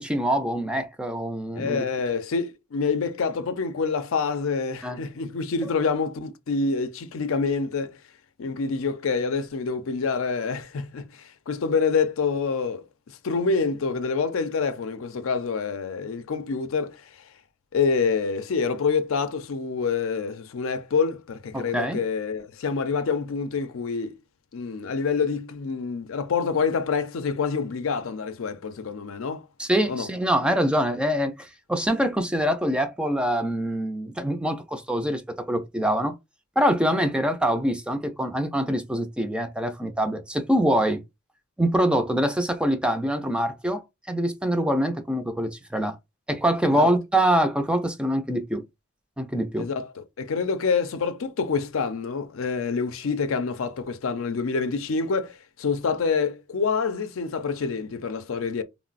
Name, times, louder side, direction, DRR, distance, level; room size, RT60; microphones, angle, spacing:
voice 1, 0.0-1.8 4.8-5.0 21.5-22.0 29.6-36.1 36.6-41.0 41.6-46.0 46.3-48.6 49.2-49.7, equal, 5° right, 0.3 m, -24 dB
voice 2, 1.5-8.0 8.4-17.1 17.7-24.2 24.5-29.5 29.9-30.1 36.9-37.0 46.7-46.9 49.6-58.6, left 5 dB, 80° left, 0.5 m, -27 dB
3.8 x 2.0 x 2.4 m
head